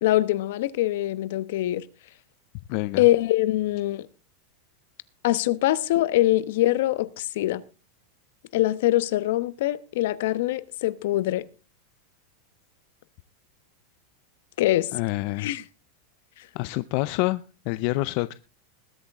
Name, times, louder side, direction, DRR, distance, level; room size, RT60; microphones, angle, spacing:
voice 1, 0.0-1.8 3.0-4.1 5.2-7.6 8.5-11.4 14.6-14.9 15.4-15.6, left 15 dB, 70° left, 1.0 m, -23 dB
voice 2, 2.7-3.0 14.9-15.5 16.6-18.3, left 20 dB, 50° left, 0.5 m, -27 dB
20.5 x 8.8 x 3.6 m
supercardioid pair, 145°, 0 cm